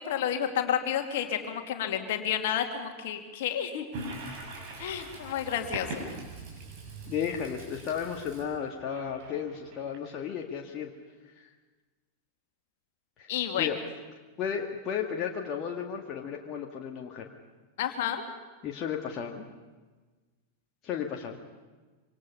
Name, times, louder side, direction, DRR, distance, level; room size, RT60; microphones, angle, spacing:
voice 1, 0.0-3.8 4.8-5.9 13.3-13.7 17.8-18.2, left 9 dB, 55° left, 4 dB, 2.5 m, -30 dB
Toilet flush, 3.9-10.5, right 2 dB, 50° right, 7.2 m, -42 dB
voice 2, 7.1-10.9 11.4-11.5 13.2-13.3 13.6-13.8 14.4-17.3 18.6-19.4 20.8-21.4, left 7 dB, 35° left, 0 dB, 1.9 m, -34 dB
26.0 x 25.5 x 5.6 m, 1.3 s
figure-of-eight pair, 90°, 0 cm